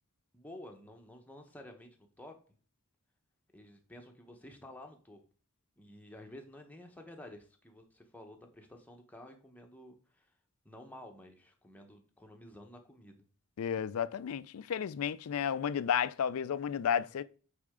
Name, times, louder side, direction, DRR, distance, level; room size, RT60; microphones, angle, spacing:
voice 1, 0.3-2.4 3.5-5.2 5.8-10.3 10.6-13.3, left 1 dB, 5° left, 1.0 m, -52 dB
voice 2, 13.6-17.2, left 8 dB, 70° left, 0.4 m, -32 dB
8.4 x 4.3 x 3.7 m
head